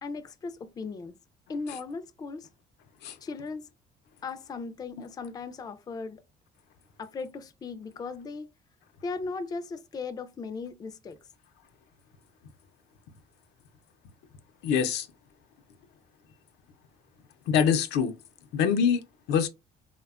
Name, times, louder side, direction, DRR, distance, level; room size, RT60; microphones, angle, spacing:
voice 1, 0.0-1.2 1.5-2.5 3.2-3.7 4.2-6.2 7.0-8.5 9.0-11.2, left 4 dB, 25° left, 0.3 m, -37 dB
voice 2, 14.6-15.1 17.5-18.1 18.5-19.5, left 7 dB, 85° left, 0.5 m, -24 dB
3.3 x 2.1 x 2.3 m
cardioid pair, 110°, 17 cm